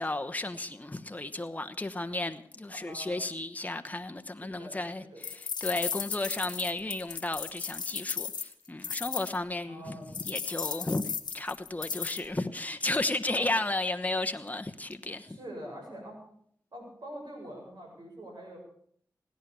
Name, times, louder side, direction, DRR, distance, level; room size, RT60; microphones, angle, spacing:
voice 1, 0.0-11.0 11.3-15.4, left 2 dB, 20° left, 1.0 m, -33 dB
voice 2, 2.7-3.3 4.4-5.2 9.7-10.1 13.3-13.5 15.3-16.2 16.7-18.6, right 1 dB, 70° right, 7.1 m, -44 dB
sound 1, 5.2-9.4 10.1-12.2, left 6 dB, 85° left, 1.1 m, -35 dB
17.0 x 10.5 x 6.9 m
cardioid pair, 45°, 7 cm